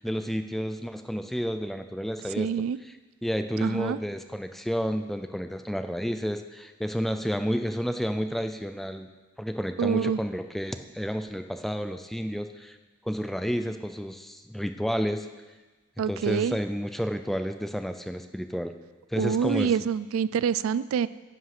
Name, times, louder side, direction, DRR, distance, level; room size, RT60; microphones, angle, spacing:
voice 1, 0.0-2.5 2.8-9.1 9.4-12.8 13.0-15.3 16.0-18.7 19.1-19.8, equal, ahead, 8 dB, 0.4 m, -31 dB
voice 2, 2.4-2.8 3.6-4.0 9.8-10.2 16.0-16.5 19.2-21.1, right 7 dB, 75° right, 17 dB, 0.3 m, -26 dB
9.9 x 8.1 x 6.0 m, 1.2 s
head